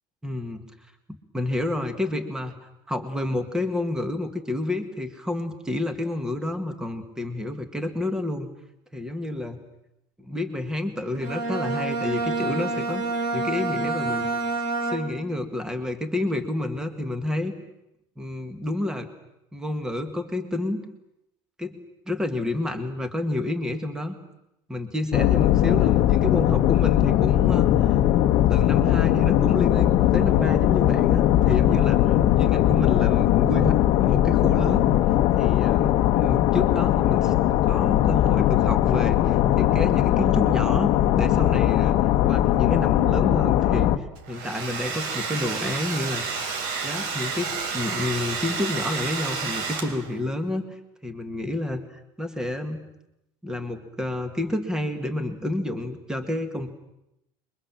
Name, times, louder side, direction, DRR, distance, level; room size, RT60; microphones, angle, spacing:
voice 1, 0.2-0.6 1.3-2.5 2.9-8.5 8.9-9.6 10.2-13.0 13.3-14.3 14.9-17.6 18.2-19.1 19.5-20.8 21.6-21.8 22.1-24.2 24.7-28.0 28.5-34.9 35.4-37.3 37.6-42.0 42.3-43.9 44.3-46.4 46.8-50.6 51.0-52.8 53.4-56.7, left 1 dB, 5° right, 8 dB, 1.9 m, -29 dB
Bowed string instrument, 11.1-15.4, right 3 dB, 45° right, 2.6 m, -28 dB
sound 1, 25.1-44.0, left 12 dB, 45° left, 1.1 m, -20 dB
Domestic sounds home sounds, 44.2-50.2, right 5 dB, 85° right, 3.5 m, -30 dB
27.5 x 23.0 x 7.6 m, 0.84 s
cardioid pair, 165°, 11 cm